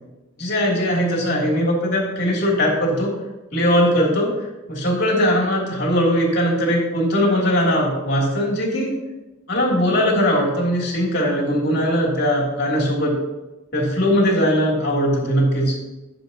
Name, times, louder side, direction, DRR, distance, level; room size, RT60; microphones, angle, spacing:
voice 1, 0.4-3.1 3.5-4.3 4.7-8.9 9.5-13.1 13.7-15.8, equal, 50° left, -3 dB, 3.0 m, -20 dB
15.0 x 7.3 x 2.9 m, 1.1 s
head